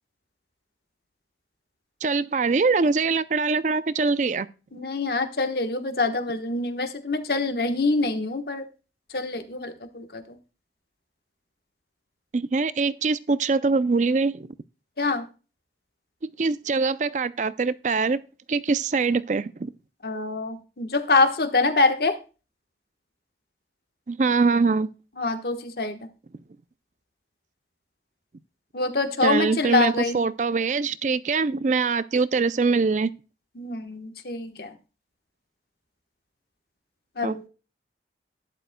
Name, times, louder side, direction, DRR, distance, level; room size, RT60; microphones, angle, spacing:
voice 1, 2.0-4.5 12.3-14.5 16.2-18.2 18.5-19.7 24.1-24.9 29.2-33.1 37.2-37.5, right 4 dB, 40° right, 0.4 m, -23 dB
voice 2, 4.7-8.6 9.1-10.4 15.0-15.2 20.0-22.2 25.2-26.0 28.7-30.2 33.6-34.7 37.2-37.5, left 3 dB, 60° left, 1.2 m, -25 dB
12.0 x 10.5 x 2.2 m
head